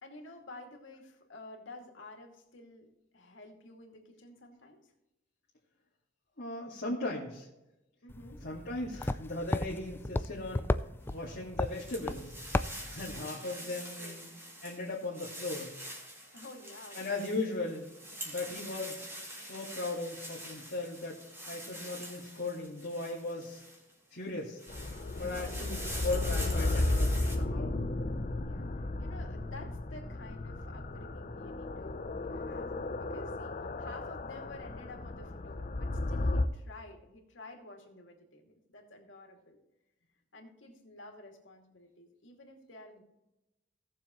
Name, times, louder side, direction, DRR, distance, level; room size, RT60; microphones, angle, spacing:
voice 1, 0.0-4.9 8.0-8.4 13.1-14.2 16.3-17.3 18.4-18.8 25.2-25.9 28.3-39.6 40.3-43.0, left 2 dB, 90° left, 1 dB, 2.5 m, -51 dB
voice 2, 6.4-7.5 8.4-10.6 11.1-12.4 12.9-14.3 14.6-15.7 16.9-17.9 18.2-19.1 19.3-23.6 24.1-24.6 25.2-27.7, left 2 dB, 60° left, -6 dB, 2.1 m, -38 dB
sound 1, 8.1-13.3, left 2 dB, 10° left, 0.3 m, -35 dB
sound 2, 11.1-23.9 24.4-27.3, right 1 dB, 15° right, 2.7 m, -45 dB
sound 3, 24.7-36.5, left 2 dB, 40° left, 0.7 m, -34 dB
18.0 x 7.1 x 3.1 m, 0.95 s
head